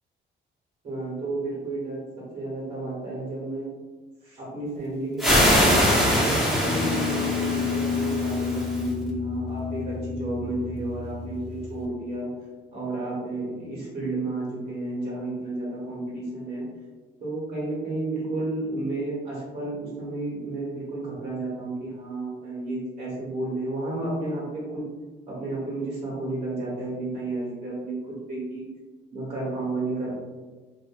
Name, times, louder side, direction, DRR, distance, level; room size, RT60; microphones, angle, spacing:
voice 1, 0.8-3.7 4.2-12.3 12.7-16.6 17.2-24.8 25.3-28.7 29.1-30.1, right 2 dB, 50° right, -7 dB, 1.2 m, -32 dB
sound 1, 5.2-8.9, equal, ahead, 0.8 m, -23 dB
Guitar, 5.3-11.9, left 5 dB, 30° left, 0.5 m, -30 dB
2.6 x 2.5 x 2.5 m, 1.3 s
cardioid pair, 90°, 20 cm